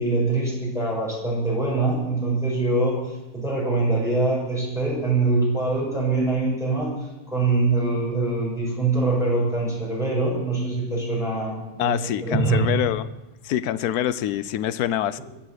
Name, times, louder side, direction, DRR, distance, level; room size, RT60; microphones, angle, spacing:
voice 1, 0.0-3.0 3.3-6.9 7.3-12.7, right 3 dB, ahead, -5 dB, 6.5 m, -23 dB
voice 2, 11.8-13.0 13.4-15.2, left 11 dB, 70° left, 15 dB, 1.2 m, -25 dB
22.0 x 7.5 x 8.0 m, 1.0 s
omnidirectional pair, 1.7 m